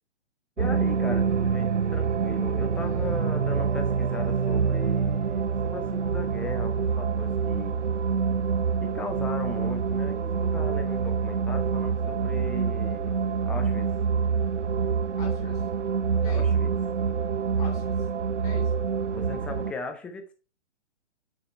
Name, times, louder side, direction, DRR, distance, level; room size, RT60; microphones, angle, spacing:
voice 1, 0.6-7.8 8.8-13.2 13.5-13.9 16.3-16.7 19.1-20.3, left 3 dB, 5° left, 7 dB, 0.5 m, -38 dB
sound 1, 0.6-19.7, right 6 dB, 70° right, 0.8 m, -26 dB
voice 2, 2.7-3.4 15.2-15.7 16.2-16.5 17.6-18.1 18.4-18.8, left 4 dB, 30° left, 0 dB, 3.4 m, -44 dB
9.3 x 6.9 x 3.3 m, 0.33 s
figure-of-eight pair, 120°, 36 cm